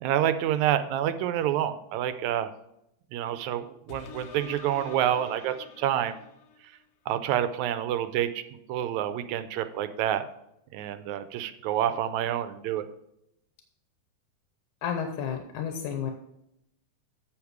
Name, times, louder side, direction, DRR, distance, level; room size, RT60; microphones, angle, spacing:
voice 1, 0.0-2.5 3.1-6.2 7.1-8.4 8.7-10.2 10.7-12.9, right 11 dB, 85° right, 11 dB, 1.9 m, -28 dB
sound 1, 3.9-6.8 7.3-7.4, left 7 dB, 70° left, 1.6 m, -46 dB
voice 2, 14.8-16.1, left 7 dB, 90° left, 4 dB, 2.3 m, -31 dB
8.0 x 7.2 x 4.7 m, 0.80 s
omnidirectional pair, 3.3 m